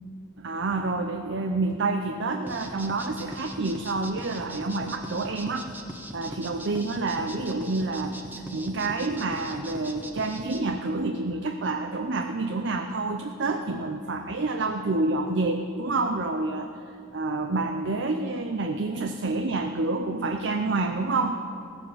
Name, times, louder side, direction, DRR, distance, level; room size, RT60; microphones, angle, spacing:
voice 1, 0.4-5.7 6.1-8.2 8.5-21.4, right 3 dB, 60° right, 5 dB, 0.6 m, -28 dB
sound 1, 2.5-10.6, right 1 dB, 10° right, 0.9 m, -40 dB
16.5 x 7.1 x 7.3 m, 2.5 s
head